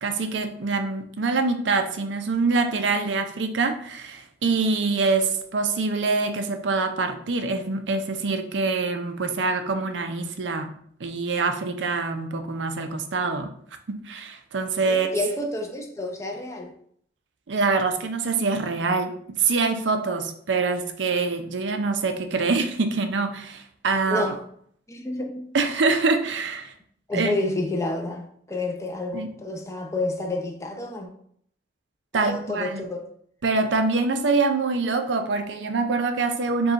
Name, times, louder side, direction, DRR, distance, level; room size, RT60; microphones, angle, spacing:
voice 1, 0.0-10.7 11.0-13.5 13.9-15.1 17.5-24.3 25.5-26.7 27.1-27.3 29.1-29.3 32.1-32.8 33.4-36.7, right 4 dB, 90° right, 0.6 m, -25 dB
voice 2, 14.9-16.7 24.1-24.4 24.9-25.5 27.1-31.1 32.1-33.1, left 2 dB, 15° left, 0.6 m, -29 dB
5.2 x 2.4 x 3.9 m
head